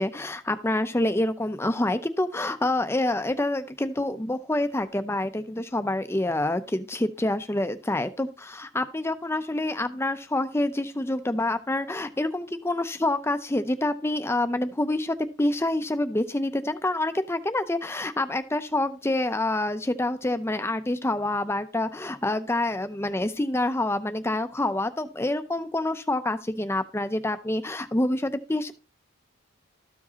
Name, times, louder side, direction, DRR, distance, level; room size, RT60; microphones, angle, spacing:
voice 1, 0.0-28.7, left 1 dB, 10° left, 10 dB, 0.5 m, -27 dB
13.5 x 4.8 x 2.9 m, 0.32 s
head